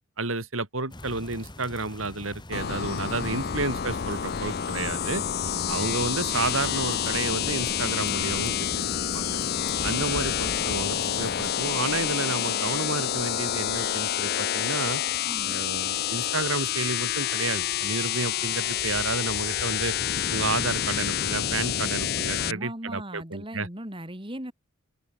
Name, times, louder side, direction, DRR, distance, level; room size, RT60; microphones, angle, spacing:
voice 1, 0.2-5.2 5.7-9.3 9.8-15.0 15.5-20.0 20.3-23.7, right 3 dB, 80° right, 4.0 m, -31 dB
sound 1, 0.9-11.5, left 1 dB, 20° left, 2.8 m, -43 dB
sound 2, 2.5-22.5, left 9 dB, 50° left, 0.5 m, -28 dB
voice 2, 3.2-3.6 5.5-5.8 15.2-15.6 22.4-24.5, right 1 dB, 25° right, 3.9 m, -39 dB
open air
head